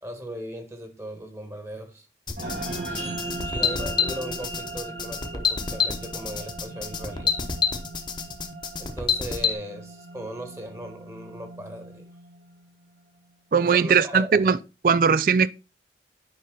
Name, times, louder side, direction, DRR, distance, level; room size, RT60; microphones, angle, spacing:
voice 1, 0.0-2.1 2.8-7.4 8.8-12.1 13.6-14.5, right 1 dB, 15° right, 1.3 m, -38 dB
sound 1, 2.3-9.5, left 6 dB, 25° left, 0.9 m, -27 dB
sound 2, 2.4-13.0, right 2 dB, 85° right, 3.6 m, -38 dB
voice 2, 13.5-14.6 14.8-15.5, right 6 dB, 50° right, 0.4 m, -19 dB
9.5 x 5.4 x 3.8 m
head